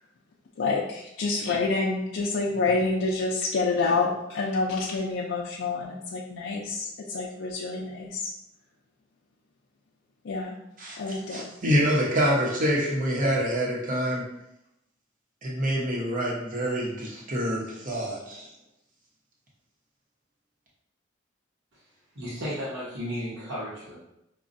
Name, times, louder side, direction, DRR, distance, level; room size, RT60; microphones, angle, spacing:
voice 1, 0.6-8.3 10.2-10.6 11.0-11.4, left 3 dB, 75° left, -4 dB, 0.4 m, -28 dB
voice 2, 11.3-14.2 15.4-18.5, equal, 40° right, -4 dB, 0.9 m, -26 dB
voice 3, 22.1-24.0, equal, 70° right, -9 dB, 1.0 m, -34 dB
5.2 x 2.3 x 2.6 m, 0.82 s
head